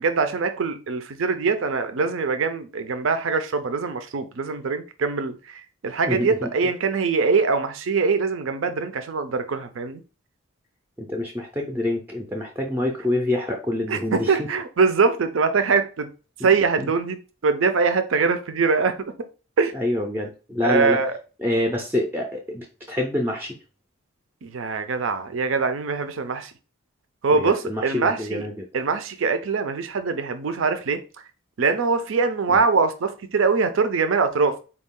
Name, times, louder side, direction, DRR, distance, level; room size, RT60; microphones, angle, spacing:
voice 1, 0.0-10.0 13.9-16.1 16.4-17.2 17.4-19.1 19.6-19.7 20.6-21.1 24.4-26.5 27.2-28.4 28.7-31.0 31.6-34.6, right 4 dB, 65° right, 0.5 m, -23 dB
voice 2, 6.0-6.5 11.0-14.5 16.4-16.5 16.8-16.9 19.7-21.0 21.4-23.5 27.3-28.7 32.5-32.6, left 1 dB, 10° right, 0.4 m, -26 dB
4.3 x 2.3 x 3.6 m
head